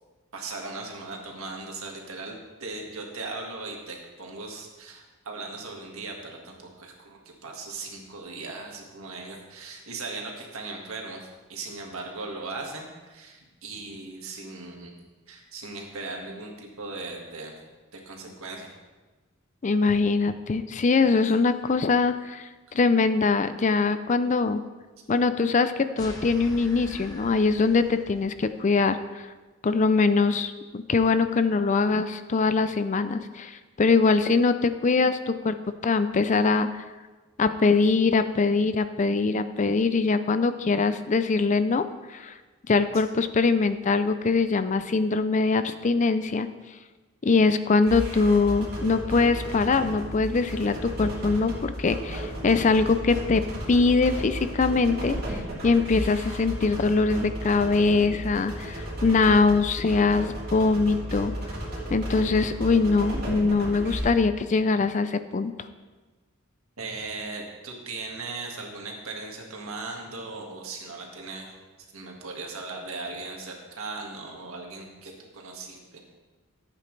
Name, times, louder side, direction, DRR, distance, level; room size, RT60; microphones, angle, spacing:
voice 1, 0.3-14.9 15.3-17.5 17.9-18.7 66.8-76.0, right 3 dB, 75° right, 0 dB, 1.9 m, -38 dB
voice 2, 19.6-24.6 25.1-29.2 29.6-35.6 35.8-36.8 37.4-41.8 42.1-42.4 42.7-46.5 47.2-53.4 53.7-55.2 55.6-61.3 61.9-65.5, left 4 dB, 35° left, 11 dB, 0.4 m, -23 dB
sound 1, 26.0-28.5, left 1 dB, 15° left, 1.0 m, -43 dB
sound 2, 47.9-64.0, right 1 dB, 45° right, 3.1 m, -34 dB
14.5 x 8.4 x 3.3 m, 1.2 s
head